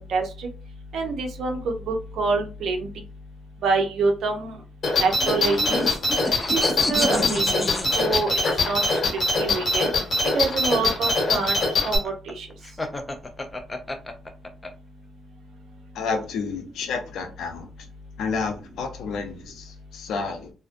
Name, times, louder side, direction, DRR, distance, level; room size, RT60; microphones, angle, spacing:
voice 1, 0.1-0.5 0.9-2.9 3.6-4.6 5.0-5.9 6.5-6.6 6.9-7.7 8.0-8.8 9.4-9.9 10.3-11.6 11.8-12.5, right 4 dB, 70° right, 0.6 m, -26 dB
sound 1, 4.8-12.0, left 2 dB, 45° left, 1.1 m, -23 dB
sound 2, 5.2-9.2 10.5-14.7, left 2 dB, 20° left, 0.4 m, -30 dB
voice 2, 15.9-17.7 18.2-20.5, left 5 dB, 75° left, 0.6 m, -30 dB
2.5 x 2.1 x 2.5 m
cardioid pair, 90°, 0 cm